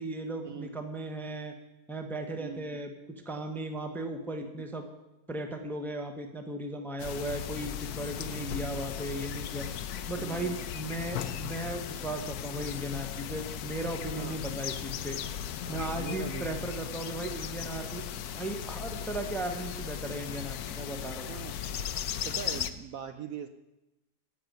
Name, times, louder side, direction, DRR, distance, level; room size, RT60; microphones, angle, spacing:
voice 1, 0.0-1.5 1.9-4.9 5.3-9.7 10.1-15.2 15.7-18.0 18.3-21.3, right 1 dB, ahead, 5 dB, 0.7 m, -36 dB
sound 1, 7.0-22.7, left 9 dB, 70° left, 1.1 m, -37 dB
voice 2, 8.4-8.7 10.2-10.6 14.2-14.4 15.7-16.5 21.3-21.6 22.2-23.5, right 8 dB, 70° right, 9 dB, 0.9 m, -41 dB
13.5 x 5.3 x 9.1 m, 1.0 s
omnidirectional pair, 1.8 m